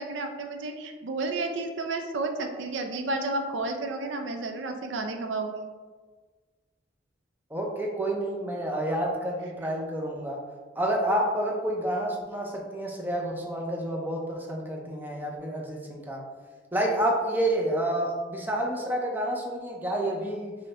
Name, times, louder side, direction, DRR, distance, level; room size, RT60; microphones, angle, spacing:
voice 1, 0.0-5.7, right 2 dB, 75° right, 5 dB, 0.4 m, -31 dB
voice 2, 7.5-10.4 10.8-16.2 16.7-20.6, right 1 dB, 10° right, -1 dB, 0.4 m, -29 dB
5.3 x 2.1 x 2.8 m, 1.4 s
head